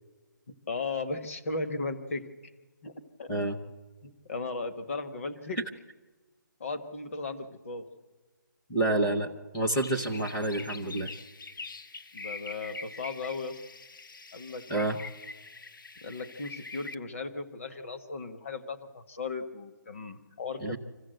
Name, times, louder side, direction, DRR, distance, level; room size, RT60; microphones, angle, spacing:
voice 1, 0.7-2.2 2.8-2.9 3.2-3.3 4.0-5.6 6.6-7.9 12.1-13.6 14.3-14.7 16.0-20.8, left 3 dB, 40° left, 8 dB, 1.4 m, -36 dB
voice 2, 8.7-11.1 14.7-15.0 20.6-20.8, right 2 dB, 10° left, 2 dB, 0.6 m, -28 dB
sound 1, 9.6-16.9, left 3 dB, 75° left, 0.9 m, -44 dB
25.5 x 15.0 x 7.9 m, 1.3 s
hypercardioid pair, 175°, 11 cm